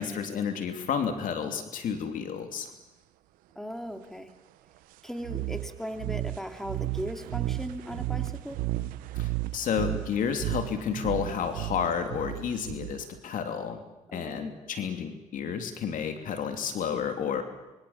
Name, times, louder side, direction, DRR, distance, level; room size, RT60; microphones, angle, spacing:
voice 1, 0.0-2.7 9.1-13.8 14.1-17.4, left 7 dB, 75° left, 6 dB, 3.0 m, -31 dB
voice 2, 3.5-4.4 5.0-8.6 14.1-14.6, equal, 5° left, 6 dB, 3.0 m, -38 dB
sound 1, 5.2-13.2, right 16 dB, 90° right, 0.8 m, -33 dB
25.5 x 23.0 x 7.3 m, 1.1 s
supercardioid pair, 60°, 14 cm